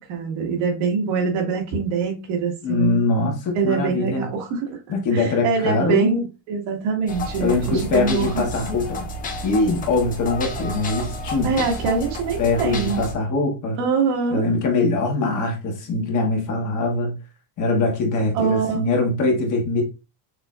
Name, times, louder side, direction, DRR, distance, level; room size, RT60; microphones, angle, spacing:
voice 1, 0.1-3.0 3.5-4.8 5.1-8.4 11.4-13.1 13.8-14.4 18.3-18.8, right 5 dB, 80° right, 2.0 m, -24 dB
voice 2, 2.6-4.3 4.9-6.1 7.4-9.1 9.4-11.7 12.4-13.8 14.3-17.1 17.6-19.8, left 3 dB, 40° left, 1.2 m, -22 dB
sound 1, 7.1-13.1, left 1 dB, 20° left, 0.4 m, -31 dB
6.5 x 2.7 x 2.4 m
cardioid pair, 165°, 48 cm